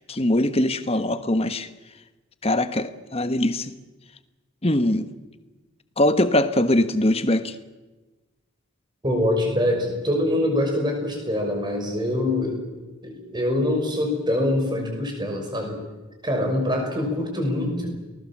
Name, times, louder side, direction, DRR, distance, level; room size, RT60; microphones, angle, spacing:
voice 1, 0.0-1.7 2.4-3.8 4.6-5.1 6.0-7.6, left 1 dB, 25° left, 10 dB, 1.2 m, -22 dB
voice 2, 9.0-12.6 13.0-15.8 16.2-17.9, left 1 dB, 20° right, 2 dB, 6.0 m, -24 dB
29.5 x 19.5 x 7.5 m, 1.2 s
head